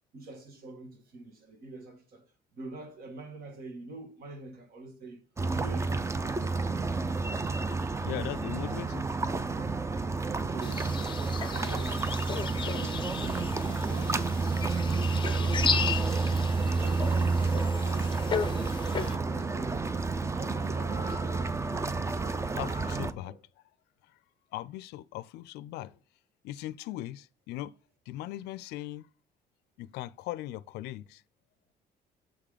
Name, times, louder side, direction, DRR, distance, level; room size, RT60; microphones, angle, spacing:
voice 1, 0.1-2.3 2.5-6.5 10.5-11.0 11.5-16.3 16.6-18.7 19.0-21.3 22.7-23.4, right 3 dB, 65° right, 1.7 m, -46 dB
sound 1, 5.4-23.1, right 3 dB, 15° right, 0.5 m, -30 dB
voice 2, 8.0-9.0 22.6-23.4 24.5-26.0 26.4-27.7 28.1-29.1 29.8-31.2, left 15 dB, 80° left, 0.4 m, -39 dB
sound 2, 10.6-19.2, left 6 dB, 30° left, 0.6 m, -35 dB
7.0 x 3.7 x 5.0 m
cardioid pair, 110°, 17 cm